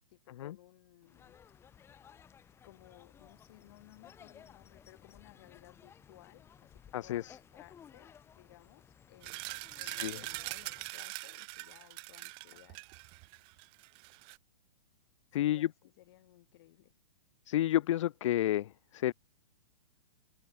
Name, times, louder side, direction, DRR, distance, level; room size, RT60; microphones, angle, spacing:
voice 1, 0.0-1.4 2.6-9.5 9.8-12.8 15.3-16.9, left 16 dB, 50° left, 7.2 m, -59 dB
sound 1, 1.1-10.9, left 8 dB, 15° left, 3.4 m, -58 dB
voice 2, 6.9-7.4 9.8-10.2 15.3-15.7 17.5-19.1, left 13 dB, 65° left, 0.4 m, -31 dB
sound 2, 9.2-14.4, right 32 dB, 30° right, 1.0 m, -43 dB
hypercardioid pair, 155°, 17 cm